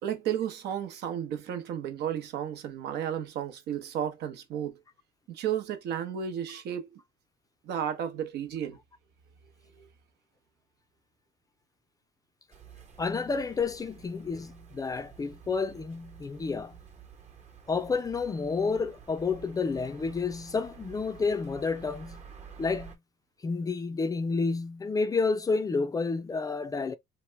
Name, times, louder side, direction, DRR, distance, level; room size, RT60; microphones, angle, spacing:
voice 1, 0.0-4.8 5.3-7.0 7.6-8.8 9.7-9.9, right 9 dB, 75° right, 0.8 m, -33 dB
sound 1, 12.5-23.0, right 7 dB, 40° right, 1.0 m, -51 dB
voice 2, 13.0-16.8 17.7-22.2 22.6-23.0 23.4-27.0, left 4 dB, 20° left, 0.4 m, -30 dB
2.9 x 2.1 x 3.2 m
cardioid pair, 110°, 17 cm